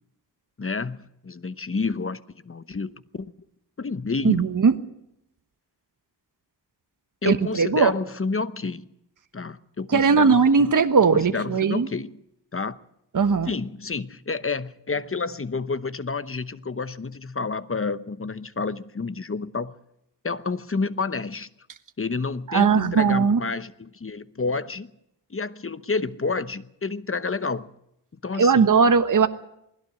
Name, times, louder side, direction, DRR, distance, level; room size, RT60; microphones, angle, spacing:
voice 1, 0.6-3.3 3.8-4.5 7.2-8.9 9.3-10.7 11.3-12.2 12.5-12.8 13.5-19.7 20.2-21.5 22.0-24.9 25.3-27.7 28.2-28.7, left 4 dB, 30° left, 0.9 m, -29 dB
voice 2, 4.2-4.7 7.2-7.9 9.9-11.9 13.1-13.5 22.5-23.4 28.4-29.3, right 5 dB, 45° right, 1.2 m, -19 dB
20.5 x 16.5 x 8.0 m
cardioid pair, 70°, 42 cm